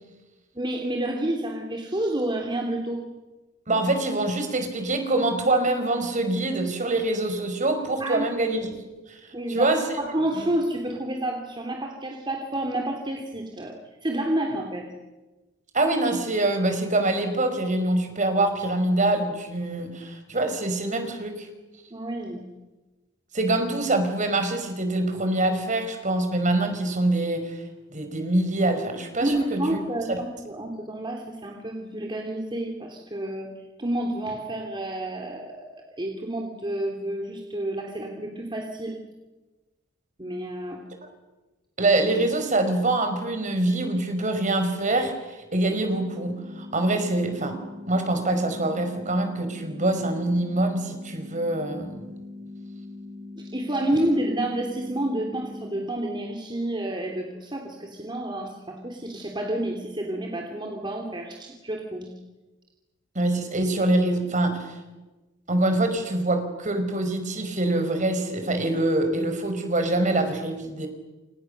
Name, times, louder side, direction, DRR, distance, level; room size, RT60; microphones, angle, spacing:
voice 1, 0.5-3.0 8.0-8.3 9.3-9.7 10.0-13.7 14.0-14.9 21.9-22.4 29.2-33.5 33.8-35.7 36.0-39.0 40.2-40.8 53.3-62.1, right 1 dB, 25° right, 1 dB, 3.3 m, -29 dB
voice 2, 3.7-8.8 9.1-9.2 9.5-9.8 10.4-10.5 15.7-21.5 23.3-27.6 27.9-29.6 30.1-30.2 41.8-47.6 47.9-52.1 63.1-64.7 65.5-70.9, right 2 dB, 40° right, 7 dB, 5.1 m, -25 dB
sound 1, 45.8-55.8, left 2 dB, 80° left, 5.4 m, -41 dB
29.0 x 28.0 x 6.8 m, 1.1 s
head